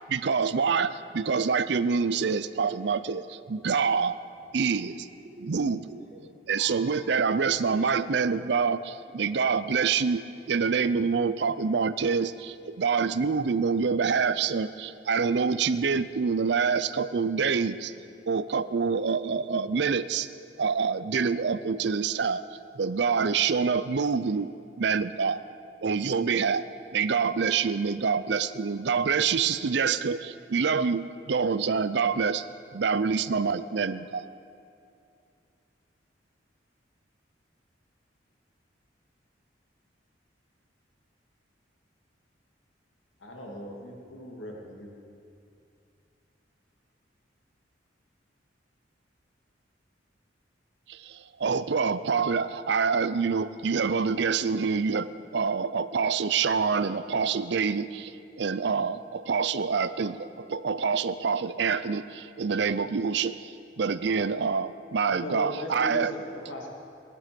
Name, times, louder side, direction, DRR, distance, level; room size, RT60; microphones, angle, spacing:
voice 1, 0.1-4.2 4.5-4.9 5.4-5.8 6.5-17.9 18.3-20.3 20.6-22.4 22.8-24.5 24.8-25.4 25.8-26.6 26.9-32.5 32.7-34.2 50.9-66.1, right 5 dB, 60° right, 14 dB, 0.5 m, -26 dB
voice 2, 4.9-7.0 7.6-8.1 8.4-8.5 10.1-10.2, right 1 dB, 40° right, -4 dB, 3.1 m, -47 dB
voice 3, 43.2-45.0 65.0-66.7, left 1 dB, 90° left, -1 dB, 2.5 m, -38 dB
19.0 x 11.5 x 5.2 m, 2.5 s
head